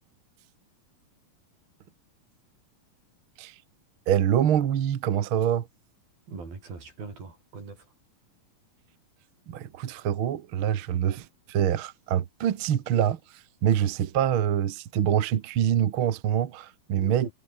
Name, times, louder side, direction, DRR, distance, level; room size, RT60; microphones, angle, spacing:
voice 1, 4.1-5.7 9.5-13.2 13.6-17.3, right 10 dB, 55° right, 1.4 m, -25 dB
voice 2, 6.3-7.9 16.9-17.3, right 4 dB, 80° right, 8.7 m, -40 dB
omnidirectional pair, 4.1 m